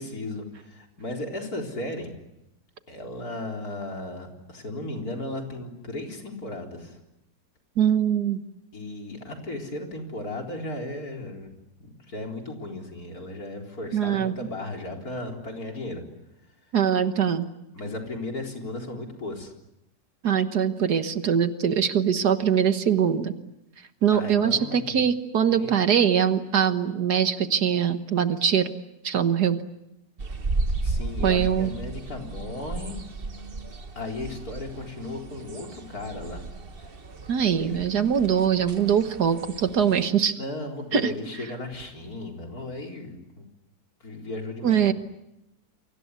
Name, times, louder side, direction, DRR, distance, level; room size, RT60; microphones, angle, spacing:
voice 1, 0.0-2.1 2.9-7.0 8.7-11.5 11.8-16.0 17.7-19.5 24.1-25.0 25.6-25.7 30.8-33.0 34.0-36.4 37.6-37.8 40.4-43.5 44.0-44.9, left 2 dB, 55° left, 2 dB, 4.5 m, -35 dB
voice 2, 7.8-8.4 13.9-14.3 16.7-17.5 20.2-23.3 24.0-28.7 29.0-29.6 31.2-31.7 37.3-40.4 40.9-41.1 44.6-44.9, right 8 dB, 65° right, 9 dB, 1.8 m, -22 dB
sound 1, 30.2-40.1, right 2 dB, 35° right, 1.5 m, -34 dB
29.5 x 24.0 x 8.3 m, 0.88 s
omnidirectional pair, 1.9 m